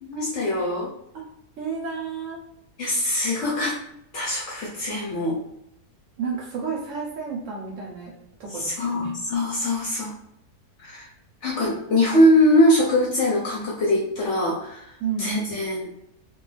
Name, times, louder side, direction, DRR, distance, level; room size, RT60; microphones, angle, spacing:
voice 1, 0.0-0.9 2.8-3.7 4.1-5.4 8.5-10.1 10.8-11.1 11.4-14.9 15.2-15.9, left 1 dB, 65° left, -4 dB, 0.7 m, -22 dB
voice 2, 1.6-2.4 6.2-8.1 8.4-9.1 15.0-15.3, right 5 dB, 65° right, -2 dB, 0.8 m, -31 dB
2.3 x 2.2 x 3.1 m, 0.76 s
omnidirectional pair, 1.6 m